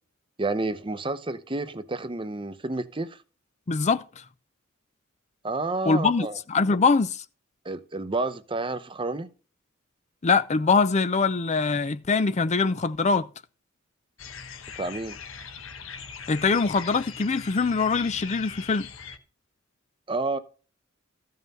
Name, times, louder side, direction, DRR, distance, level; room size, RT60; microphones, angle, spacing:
voice 1, 0.4-3.2 5.4-6.4 7.6-9.3 14.8-15.2 20.1-20.4, right 3 dB, 25° right, 0.8 m, -30 dB
voice 2, 3.7-4.0 5.9-7.2 10.2-13.3 16.3-18.9, left 4 dB, 35° left, 0.5 m, -23 dB
sound 1, 14.2-19.2, left 6 dB, 75° left, 1.3 m, -41 dB
14.0 x 5.7 x 5.4 m
head